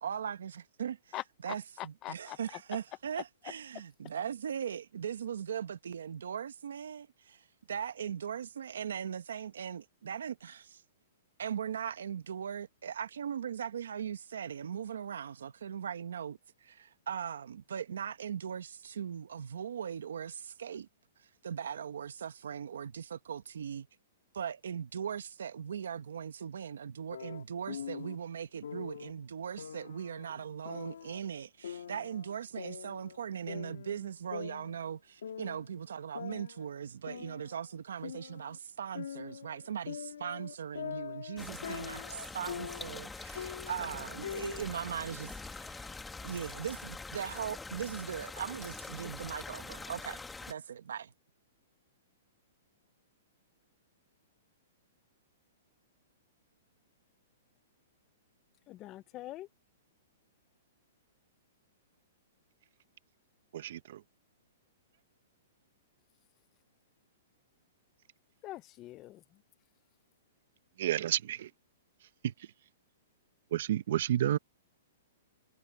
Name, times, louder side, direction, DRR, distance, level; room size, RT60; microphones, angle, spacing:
voice 1, 0.0-10.8 11.4-20.9 21.4-23.9 24.3-45.9 46.2-50.2 50.5-51.1, right 8 dB, 85° right, 1.3 m, -39 dB
voice 2, 2.0-2.4 58.7-59.5 68.4-69.2, left 16 dB, 25° left, 0.5 m, -43 dB
sound 1, 27.1-28.2 28.6-29.1 29.6-31.2 31.6-33.2 33.5-35.0 35.2-35.7 36.1-38.6 38.9-43.1 43.4-44.7, left 8 dB, 90° left, 2.2 m, -43 dB
sound 2, 41.4-50.5, left 3 dB, 5° left, 1.6 m, -44 dB
voice 3, 63.5-64.0 70.8-71.5 72.2-72.3 73.5-74.4, right 12 dB, 55° right, 1.1 m, -30 dB
hypercardioid pair, 160°, 0 cm